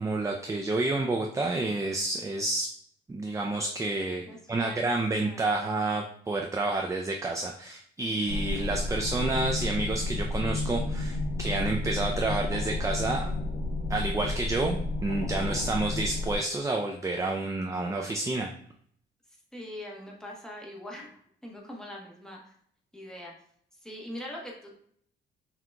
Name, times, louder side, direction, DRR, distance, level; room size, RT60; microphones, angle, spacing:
voice 1, 0.0-2.7 3.1-4.2 4.5-13.3 13.9-18.5, right 2 dB, 15° right, 2 dB, 0.4 m, -29 dB
voice 2, 4.3-5.5 19.5-22.5 22.9-23.3 23.7-24.7, left 1 dB, 5° left, -3 dB, 1.3 m, -43 dB
sound 1, 8.3-16.4, left 2 dB, 50° left, 0.8 m, -31 dB
5.9 x 2.8 x 2.3 m, 0.63 s
cardioid pair, 90°, 20 cm